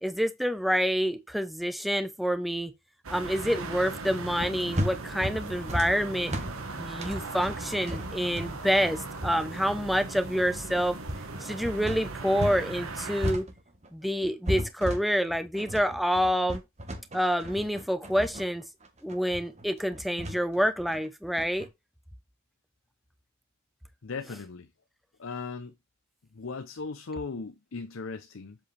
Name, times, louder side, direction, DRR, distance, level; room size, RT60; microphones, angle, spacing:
voice 1, 0.0-2.7 3.1-6.3 6.8-11.0 11.4-13.5 13.9-16.6 17.1-18.6 19.0-21.7, equal, ahead, 0.7 m, -27 dB
sound 1, 3.0-13.3, right 3 dB, 70° right, 1.3 m, -38 dB
sound 2, 4.4-12.6 12.9-21.7, equal, 30° right, 1.4 m, -35 dB
voice 2, 24.0-24.7 25.2-25.7 26.3-28.6, left 4 dB, 65° left, 0.6 m, -37 dB
7.6 x 4.9 x 3.3 m
head